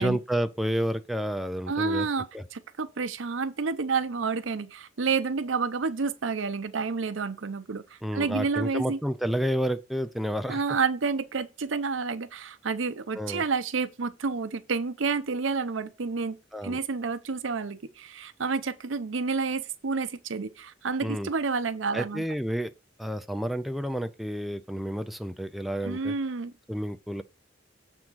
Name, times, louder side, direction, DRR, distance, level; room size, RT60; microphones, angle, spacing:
voice 1, 0.0-2.1 2.3-2.4 8.0-10.6 13.2-13.4 16.5-16.8 21.0-21.3 21.9-22.7 23.0-26.1 26.7-27.2, equal, ahead, 0.4 m, -30 dB
voice 2, 1.7-9.0 10.5-16.4 16.6-22.2 25.8-26.5, right 4 dB, 85° right, 0.7 m, -29 dB
7.5 x 3.5 x 6.2 m
head